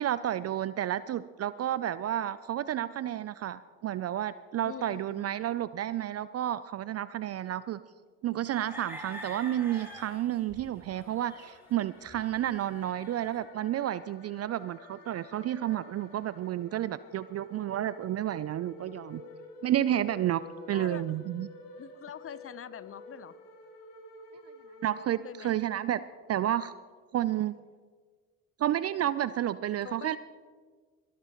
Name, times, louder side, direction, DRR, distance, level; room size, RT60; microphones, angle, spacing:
voice 1, 0.0-7.8 8.2-19.2 19.6-21.5 24.8-26.0 26.3-26.7 27.1-27.5 28.6-30.2, right 12 dB, 35° right, 16 dB, 0.4 m, -31 dB
voice 2, 4.6-5.2 20.7-21.3 21.8-23.4 25.2-25.6 29.8-30.2, left 8 dB, 30° left, 16 dB, 0.7 m, -44 dB
sound 1, 8.4-13.4, equal, 5° right, 4.7 m, -46 dB
sound 2, 10.9-26.2, left 2 dB, 80° left, 2.3 m, -51 dB
22.0 x 12.5 x 3.0 m, 1.5 s
hypercardioid pair, 60°, 45 cm